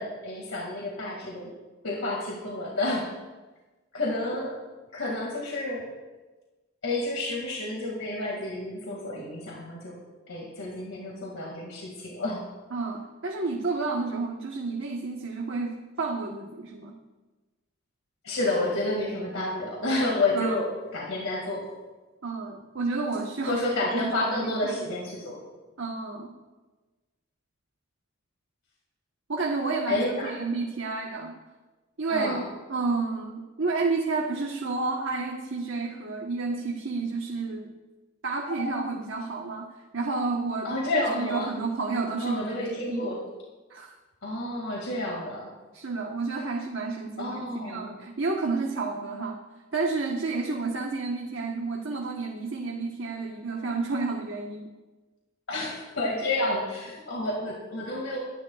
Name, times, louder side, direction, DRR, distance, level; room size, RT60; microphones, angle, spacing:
voice 1, 0.0-1.5 1.8-3.1 3.9-4.6 4.9-5.8 6.8-10.0 10.3-12.4 18.2-21.7 23.5-25.4 29.9-30.3 32.1-32.4 40.6-41.5 42.2-43.2 44.2-45.5 47.2-47.9 55.5-58.2, left 2 dB, 90° left, -2 dB, 2.3 m, -30 dB
voice 2, 12.7-16.9 20.3-20.6 22.2-23.6 23.9-24.7 25.8-26.3 29.3-31.3 32.0-37.7 38.2-39.7 39.9-40.7 41.1-43.1 43.7-44.0 45.7-49.4 49.7-54.7, right 3 dB, 70° right, 0 dB, 1.2 m, -30 dB
24.0 x 11.0 x 2.4 m, 1.2 s
head